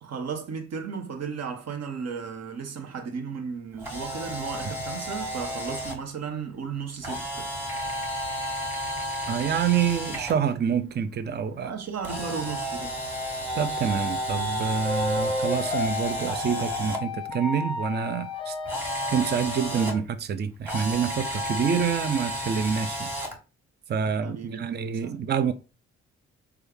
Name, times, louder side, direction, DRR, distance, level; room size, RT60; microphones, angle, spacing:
voice 1, 0.0-7.5 11.6-13.0 24.1-25.2, right 6 dB, 50° right, 0.9 m, -35 dB
Camera, 3.8-6.0 7.0-10.3 12.0-17.0 18.7-19.9 20.6-23.4, equal, 5° right, 1.5 m, -32 dB
voice 2, 9.3-11.7 13.5-18.5 19.1-23.1 23.9-25.5, right 7 dB, 30° right, 0.5 m, -27 dB
sound 1, 14.8-20.0, left 2 dB, 15° left, 0.7 m, -33 dB
3.4 x 2.3 x 3.3 m
hypercardioid pair, 45°, 33 cm